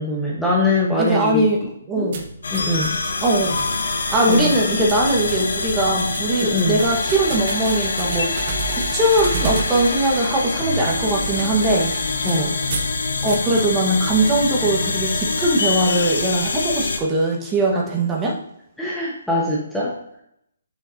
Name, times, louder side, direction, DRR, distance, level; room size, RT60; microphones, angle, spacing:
voice 1, 0.0-1.5 2.0-2.1 2.5-3.0 4.3-4.5 6.4-6.8 12.2-12.5 18.8-19.9, left 1 dB, ahead, -6 dB, 1.1 m, -22 dB
voice 2, 1.0-2.2 3.2-3.6 4.1-11.9 13.2-18.4, right 1 dB, 15° right, -1 dB, 1.3 m, -20 dB
sound 1, 2.1-12.9 13.3-13.7, right 5 dB, 45° right, 1.1 m, -32 dB
sound 2, 2.4-17.0, left 3 dB, 75° left, 1.0 m, -25 dB
7.2 x 5.7 x 2.7 m, 0.74 s
hypercardioid pair, 155°, 0 cm